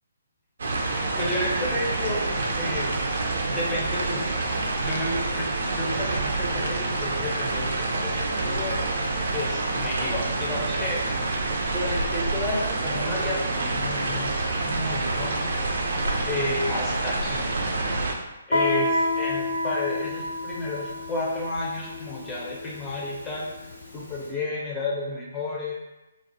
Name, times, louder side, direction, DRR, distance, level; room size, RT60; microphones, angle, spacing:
sound 1, 0.6-18.1, right 2 dB, 60° right, 0.4 m, -27 dB
voice 1, 1.2-2.3 2.6-2.9 3.5-4.4 4.8-8.8 9.3-11.0 11.7-14.3 14.6-15.5 16.2-17.7 18.5-23.5 23.9-25.7, left 2 dB, 15° left, -5 dB, 0.7 m, -31 dB
Guitar, 18.5-24.0, left 2 dB, 85° left, 1.1 m, -29 dB
2.4 x 2.2 x 2.7 m, 1.0 s
figure-of-eight pair, 135°, 0 cm